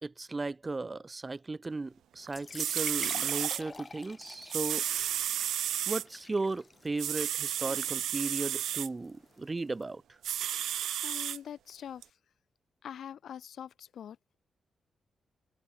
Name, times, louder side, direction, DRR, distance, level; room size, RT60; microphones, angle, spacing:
voice 1, 0.0-4.8 5.9-10.0, right 3 dB, 30° right, 2.3 m, -36 dB
sound 1, 2.2-9.8, left 4 dB, 35° left, 5.1 m, -48 dB
sound 2, 2.3-2.4 2.6-3.6 4.5-6.0 7.0-8.9 10.2-11.4 12.0-12.1, right 11 dB, 85° right, 0.5 m, -32 dB
voice 2, 11.0-12.0 12.8-14.2, left 9 dB, 75° left, 1.1 m, -43 dB
cardioid pair, 70°, 0 cm